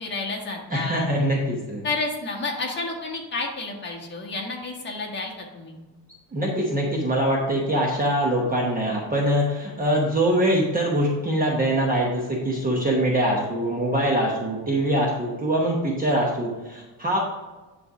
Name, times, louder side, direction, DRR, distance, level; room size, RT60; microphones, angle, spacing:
voice 1, 0.0-1.1 1.8-5.8, left 3 dB, 25° left, -1 dB, 1.5 m, -30 dB
voice 2, 0.7-1.9 6.3-17.2, right 1 dB, 20° right, -2 dB, 0.9 m, -23 dB
9.6 x 3.3 x 4.9 m, 1.2 s
cardioid pair, 155°, 42 cm